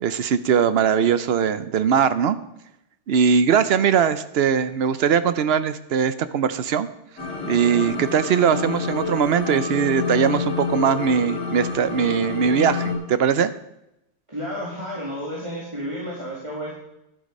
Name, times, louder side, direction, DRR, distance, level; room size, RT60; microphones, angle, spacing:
voice 1, 0.0-2.4 3.1-6.9 7.4-13.5, right 7 dB, 60° right, 14 dB, 0.8 m, -20 dB
sound 1, 7.2-13.0, left 5 dB, 85° left, 2.9 m, -28 dB
voice 2, 14.3-16.7, equal, 25° right, -6 dB, 2.2 m, -31 dB
11.0 x 7.8 x 5.3 m, 0.85 s
omnidirectional pair, 1.3 m